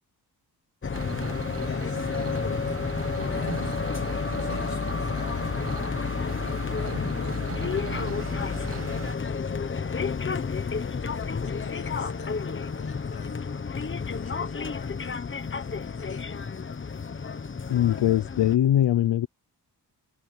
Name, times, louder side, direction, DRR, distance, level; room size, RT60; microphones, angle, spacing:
voice 1, 0.8-2.8 3.3-5.9 6.4-9.1 9.5-16.3, left 7 dB, 60° left, 2.3 m, -46 dB
sound 1, 0.8-18.6, left 5 dB, 30° left, 1.0 m, -30 dB
sound 2, 0.9-9.1, right 7 dB, 35° right, 0.5 m, -38 dB
voice 2, 17.7-19.3, left 12 dB, 85° left, 0.7 m, -22 dB
wide cardioid pair, 160°, 40 cm